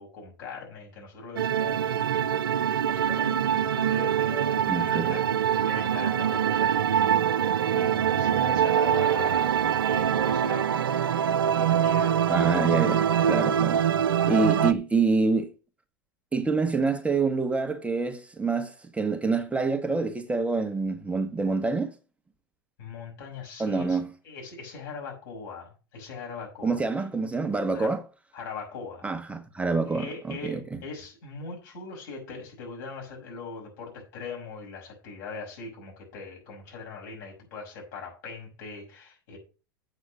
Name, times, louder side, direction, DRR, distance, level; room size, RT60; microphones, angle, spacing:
voice 1, 0.0-2.5 2.8-5.3 5.6-9.6 9.8-10.7 11.5-12.2 13.0-13.2 14.3-14.7 22.8-24.0 24.2-26.8 27.7-28.0 28.3-29.1 29.8-39.4, left 5 dB, 60° left, 5.9 m, -41 dB
sound 1, 1.4-14.7, right 9 dB, 80° right, 0.6 m, -24 dB
voice 2, 4.7-5.1 12.3-13.8 14.3-15.5 16.3-21.9 23.6-24.1 26.6-28.0 29.0-30.6, right 4 dB, 10° right, 1.0 m, -26 dB
8.0 x 6.2 x 6.1 m
hypercardioid pair, 90°, 12 cm